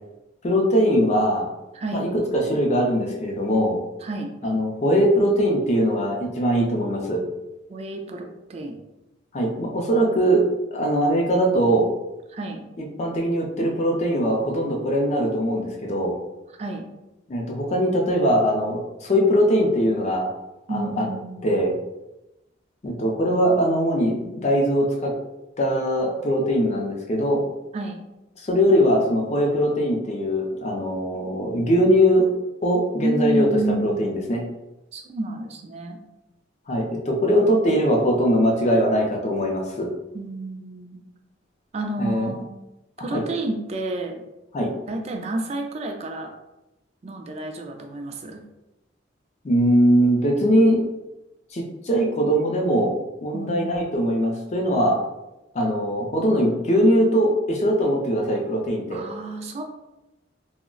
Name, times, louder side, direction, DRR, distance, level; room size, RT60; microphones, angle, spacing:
voice 1, 0.4-1.5 1.9-3.8 4.4-7.2 9.3-10.4 10.7-11.9 12.8-16.1 17.3-20.3 20.7-21.1 21.4-21.7 22.8-25.1 25.6-27.4 28.4-32.3 32.6-33.5 33.8-34.4 36.7-39.9 42.0-42.3 43.1-43.2 44.5-44.7 49.4-50.8 51.5-52.9 53.2-55.0 55.5-59.0, equal, 35° left, 0 dB, 0.4 m, -21 dB
voice 2, 1.7-2.1 4.0-4.3 7.7-8.8 12.3-12.6 16.6-16.9 20.7-21.6 27.7-28.0 33.0-34.2 34.9-36.0 40.1-41.0 41.7-42.5 43.0-44.2 44.9-46.3 47.0-48.4 53.3-53.8 58.9-59.6, right 1 dB, 35° right, 3 dB, 0.3 m, -30 dB
3.7 x 2.0 x 2.2 m, 0.97 s
head